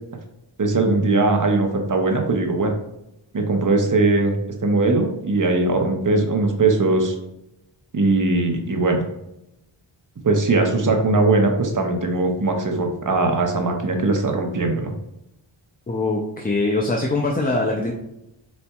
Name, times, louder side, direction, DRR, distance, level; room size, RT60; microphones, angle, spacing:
voice 1, 0.6-2.7 3.3-4.3 4.6-7.1 7.9-9.0 10.2-14.9, right 3 dB, 40° right, 3 dB, 0.8 m, -20 dB
voice 2, 15.9-17.9, left 2 dB, 20° left, 0 dB, 0.5 m, -22 dB
4.3 x 3.9 x 2.3 m, 0.85 s
wide cardioid pair, 80°, 50 cm